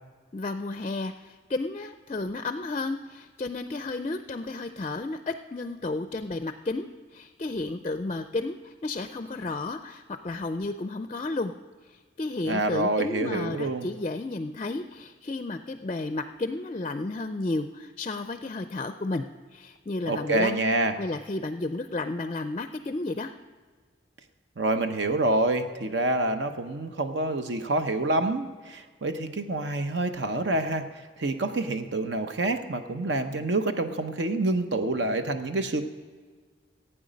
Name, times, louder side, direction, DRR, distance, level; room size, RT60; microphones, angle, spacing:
voice 1, 0.3-11.5 11.8-19.3 19.5-20.6 21.0-23.3, left 2 dB, 30° left, 9 dB, 0.4 m, -32 dB
voice 2, 12.4-13.9 20.0-20.9 24.6-30.9 31.2-35.8, right 2 dB, 70° right, 7 dB, 0.8 m, -27 dB
15.5 x 8.9 x 5.1 m, 1.5 s
head